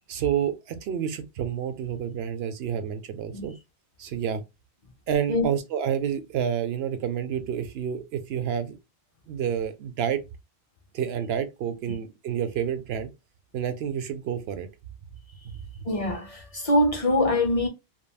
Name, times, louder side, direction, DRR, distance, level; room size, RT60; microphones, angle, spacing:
voice 1, 0.1-3.5 4.0-4.4 5.1-8.8 9.3-10.2 10.9-13.1 13.5-14.7 15.4-15.5, right 8 dB, 75° right, 0.8 m, -29 dB
voice 2, 15.9-17.7, left 1 dB, 40° left, 0.6 m, -23 dB
3.2 x 2.2 x 2.3 m
omnidirectional pair, 1.1 m